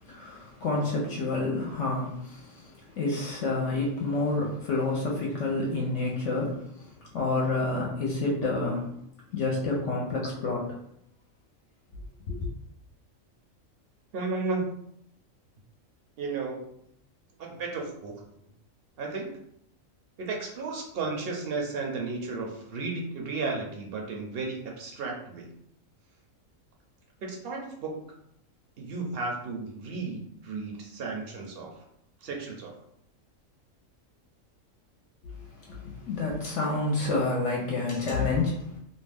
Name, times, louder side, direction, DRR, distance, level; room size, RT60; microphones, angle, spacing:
voice 1, 0.1-2.7 3.0-6.6 7.1-8.9 9.3-10.7 12.3-12.5 35.2-35.4 35.7-35.8 36.0-38.8, left 3 dB, 70° left, -2 dB, 0.9 m, -28 dB
voice 2, 14.1-14.6 16.2-16.7 17.4-18.2 19.0-19.3 20.2-25.5 27.2-28.0 28.8-31.7 32.2-32.7, right 3 dB, 60° right, 0 dB, 0.7 m, -33 dB
2.5 x 2.2 x 3.3 m, 0.72 s
omnidirectional pair, 1.4 m